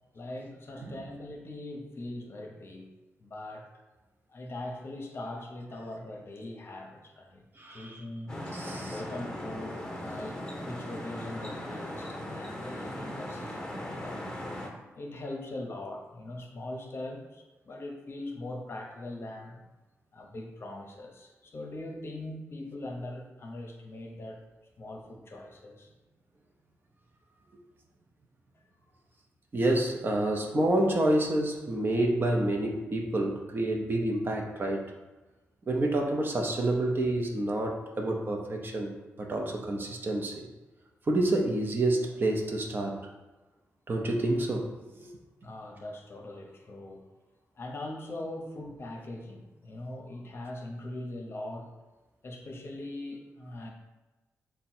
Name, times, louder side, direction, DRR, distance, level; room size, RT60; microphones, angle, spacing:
voice 1, 0.1-2.9 3.2-3.8 4.3-8.4 8.9-14.3 14.9-19.6 20.1-24.4 24.8-25.9 45.4-47.0 47.6-51.7 52.2-53.7, left 1 dB, 50° left, 2 dB, 0.7 m, -41 dB
voice 2, 7.6-8.0 8.5-9.0 29.5-34.9 35.7-38.9 39.2-40.5 41.1-43.0 43.9-44.7 45.0-45.1, right 1 dB, 40° right, 1 dB, 0.7 m, -28 dB
sound 1, 8.3-14.7, left 1 dB, 15° left, 0.9 m, -38 dB
3.6 x 2.2 x 4.3 m, 1.1 s
cardioid pair, 70°, 5 cm